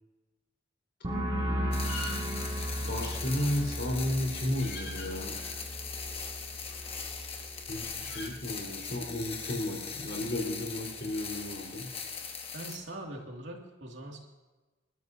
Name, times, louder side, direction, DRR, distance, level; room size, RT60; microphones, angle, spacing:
sound 1, 1.0-8.5 8.8-9.3, equal, 25° right, 2.1 m, -36 dB
sound 2, 1.7-12.8, left 6 dB, 30° left, 1.3 m, -40 dB
sound 3, 1.8-7.2 7.5-8.3, left 2 dB, 80° left, 6.2 m, -46 dB
voice 1, 2.9-5.3 7.7-11.9, left 1 dB, 55° left, -1 dB, 4.2 m, -33 dB
voice 2, 12.5-14.2, right 1 dB, 65° right, 0 dB, 2.5 m, -42 dB
28.0 x 12.5 x 2.8 m, 1.2 s
head